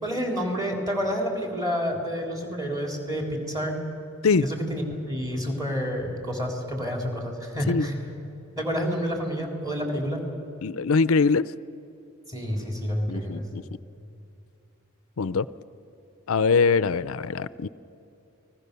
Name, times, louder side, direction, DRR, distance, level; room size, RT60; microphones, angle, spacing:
voice 1, 0.0-3.8 4.4-8.0 8.6-10.2 12.3-13.5, equal, 15° right, 1 dB, 3.8 m, -29 dB
voice 2, 10.6-11.4 13.1-13.6 15.2-15.5 16.3-17.7, left 4 dB, 70° left, 17 dB, 0.5 m, -22 dB
29.5 x 20.0 x 6.9 m, 2.7 s
head